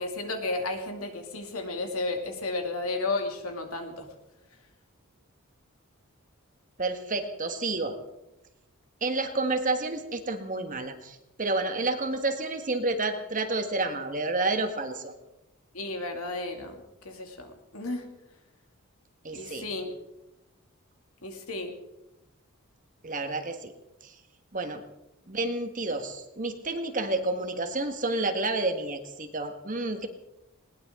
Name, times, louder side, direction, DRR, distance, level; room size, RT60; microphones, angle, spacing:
voice 1, 0.0-4.1 15.7-16.8 17.0-18.1 19.3-19.9 21.2-21.7, left 2 dB, 75° left, 4 dB, 2.6 m, -33 dB
voice 2, 6.8-8.0 9.0-15.1 19.2-19.7 23.0-23.7 24.0-24.1 24.5-24.8 25.3-30.1, right 2 dB, 35° right, 6 dB, 1.6 m, -30 dB
20.5 x 19.0 x 3.7 m, 0.92 s
head